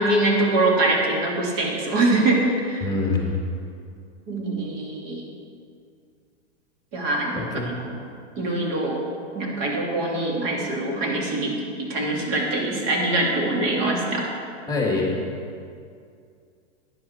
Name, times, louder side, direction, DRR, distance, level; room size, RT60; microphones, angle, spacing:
voice 1, 0.0-2.9 4.3-5.2 6.9-7.5 8.4-9.0 9.3-14.3, right 2 dB, 40° right, -1 dB, 2.5 m, -23 dB
voice 2, 2.8-3.4 7.4-8.0 14.7-15.1, left 3 dB, 10° left, -2 dB, 1.8 m, -25 dB
12.0 x 9.8 x 4.4 m, 2.3 s
hypercardioid pair, 135°, 38 cm